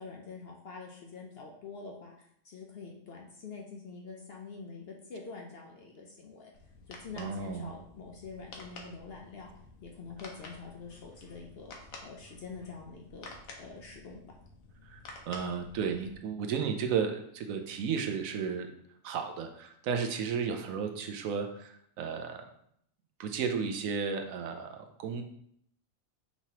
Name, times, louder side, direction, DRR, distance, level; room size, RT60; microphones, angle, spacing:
voice 1, 0.0-2.1 2.4-6.5 6.9-9.5 9.8-11.7 12.0-13.3 13.6-14.3, left 4 dB, 60° left, 0 dB, 0.7 m, -45 dB
sound 1, 6.5-16.2, left 3 dB, 80° left, 1.2 m, -51 dB
voice 2, 7.2-7.7 14.8-18.7 19.0-22.4 23.2-25.2, right 6 dB, 75° right, 6 dB, 1.0 m, -33 dB
5.6 x 3.0 x 2.8 m, 0.69 s
omnidirectional pair, 1.5 m